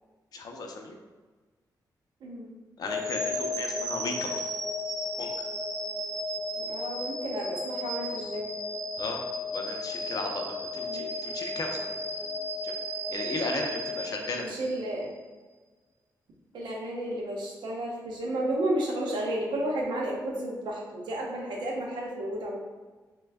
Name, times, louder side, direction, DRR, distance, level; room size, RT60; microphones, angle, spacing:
voice 1, 0.3-1.0 2.8-4.3 5.2-5.3 9.0-9.2 9.5-12.0 12.2-12.3 12.6-12.8 13.1-14.6, left 3 dB, 55° left, 2 dB, 0.5 m, -35 dB
voice 2, 2.2-2.6 6.6-8.5 10.9-11.2 14.3-15.2 16.5-22.6, right 1 dB, 90° right, -1 dB, 0.7 m, -32 dB
sound 1, 2.8-15.0, left 1 dB, 45° right, 0.6 m, -34 dB
3.2 x 2.1 x 3.4 m, 1.3 s
wide cardioid pair, 115°, 8 cm